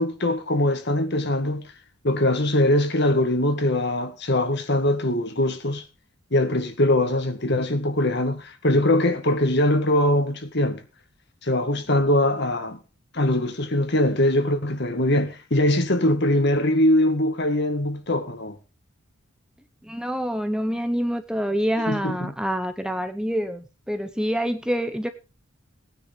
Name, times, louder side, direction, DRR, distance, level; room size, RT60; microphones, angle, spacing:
voice 1, 0.0-1.7 2.0-5.8 6.3-10.8 11.4-12.8 13.1-18.6 21.9-22.3, left 1 dB, 55° left, 1.9 m, -22 dB
voice 2, 19.8-25.1, equal, 5° right, 0.8 m, -26 dB
18.5 x 9.9 x 3.6 m
head